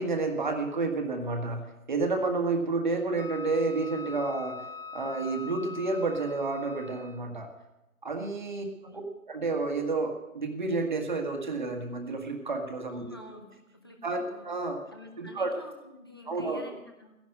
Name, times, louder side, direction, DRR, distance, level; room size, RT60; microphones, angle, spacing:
voice 1, 0.0-4.7 4.9-7.5 8.0-8.6 9.3-13.2 14.0-14.8 15.2-15.6 16.3-16.6, right 3 dB, 35° right, 4 dB, 1.6 m, -30 dB
Wind instrument woodwind instrument, 3.2-7.4, left 4 dB, 40° left, 1.4 m, -43 dB
voice 2, 8.5-9.0 12.9-14.5 14.9-17.2, left 1 dB, 15° left, 3 dB, 0.8 m, -48 dB
15.0 x 11.0 x 6.5 m, 0.99 s
hypercardioid pair, 170°, 43 cm